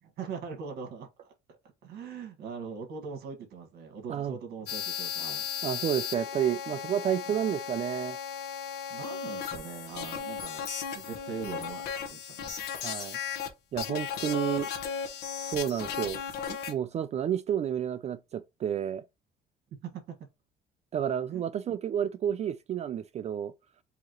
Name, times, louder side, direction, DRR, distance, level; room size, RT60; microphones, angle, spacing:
voice 1, 0.0-1.3 1.8-5.5 7.3-7.4 8.9-10.7 10.9-12.7 19.8-20.2 21.3-21.4, right 5 dB, 70° right, 1.7 m, -41 dB
sound 1, 4.7-13.5 13.8-16.7, left 7 dB, 75° left, 1.0 m, -36 dB
voice 2, 5.6-8.2 12.8-13.2 13.7-14.7 15.4-16.2 16.5-19.0 20.9-23.5, right 9 dB, 40° right, 0.4 m, -30 dB
4.8 x 2.9 x 3.0 m
cardioid pair, 110°, 17 cm